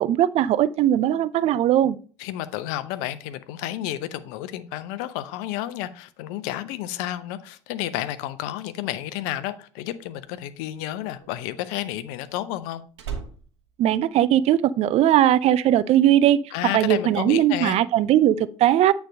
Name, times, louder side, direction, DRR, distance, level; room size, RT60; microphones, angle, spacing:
voice 1, 0.0-2.0 13.8-16.4 16.7-18.9, right 12 dB, 45° right, 0.4 m, -19 dB
voice 2, 2.2-12.8 16.5-17.8, left 13 dB, 65° left, 0.7 m, -31 dB
Slam, 10.0-14.8 15.1-15.5, right 6 dB, 75° right, 1.1 m, -40 dB
8.9 x 3.4 x 5.2 m
figure-of-eight pair, 55°, 14 cm